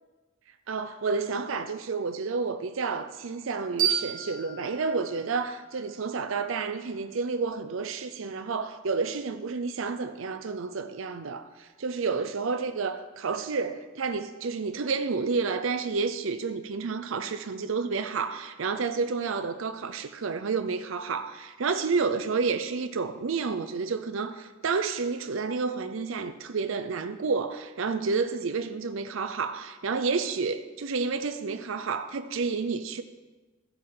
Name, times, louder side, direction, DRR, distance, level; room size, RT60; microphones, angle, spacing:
voice 1, 0.7-33.0, right 4 dB, 85° right, 0.6 m, -30 dB
sound 1, 3.8-6.6, right 8 dB, 45° right, 2.5 m, -32 dB
14.0 x 7.9 x 3.8 m
head